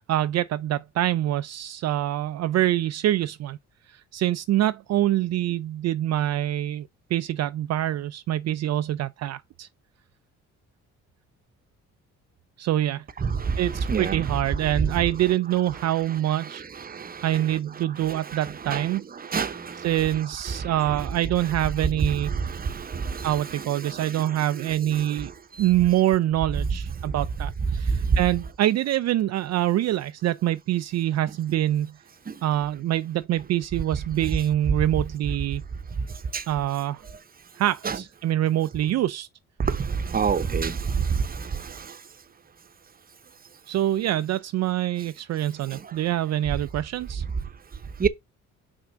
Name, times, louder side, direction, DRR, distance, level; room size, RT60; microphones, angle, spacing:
voice 1, 0.0-3.6 3.9-9.7 12.6-13.0 13.6-16.6 16.9-19.0 19.8-22.3 23.2-25.3 25.6-32.0 32.4-35.6 36.5-37.0 37.6-39.3 43.7-47.2, right 13 dB, 60° right, 0.4 m, -25 dB
voice 2, 13.9-14.2 18.7-18.8 19.3-19.5 36.3-36.4 37.8-38.0 40.1-40.8 48.0-48.1, right 6 dB, 30° right, 0.9 m, -24 dB
6.0 x 3.6 x 5.6 m
cardioid pair, 90°, 30 cm